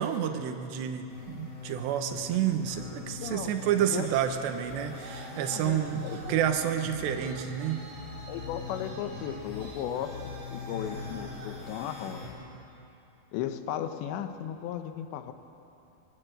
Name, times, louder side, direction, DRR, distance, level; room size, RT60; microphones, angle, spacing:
voice 1, 0.0-7.8, right 9 dB, 80° right, 5 dB, 3.2 m, -29 dB
sound 1, 1.1-12.3, left 4 dB, 40° left, 5.6 m, -42 dB
voice 2, 3.8-4.1 5.5-6.2 8.3-10.2 10.5-12.2 13.3-15.3, left 10 dB, 80° left, 8 dB, 3.1 m, -36 dB
Traffic noise roadway noise, 4.7-12.3, right 2 dB, 60° right, 4.5 m, -49 dB
21.5 x 18.0 x 7.9 m, 2.8 s
omnidirectional pair, 5.1 m